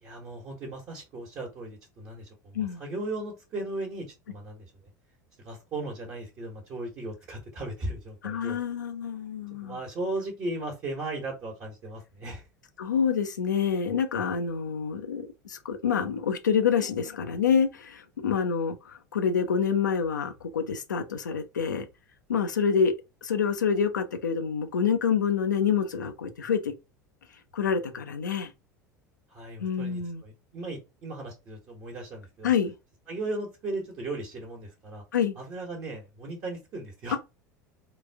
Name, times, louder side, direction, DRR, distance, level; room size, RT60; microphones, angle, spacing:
voice 1, 0.0-4.7 5.4-8.6 9.6-12.4 29.3-32.5 33.1-35.0 35.4-37.2, right 2 dB, 35° right, 1.2 m, -37 dB
voice 2, 8.2-9.8 12.8-21.9 22.3-22.9 23.2-26.7 27.5-28.5 29.6-30.2 32.4-32.7 35.1-35.4, left 7 dB, 75° left, 0.6 m, -27 dB
3.9 x 2.5 x 3.5 m
figure-of-eight pair, 75°, 10 cm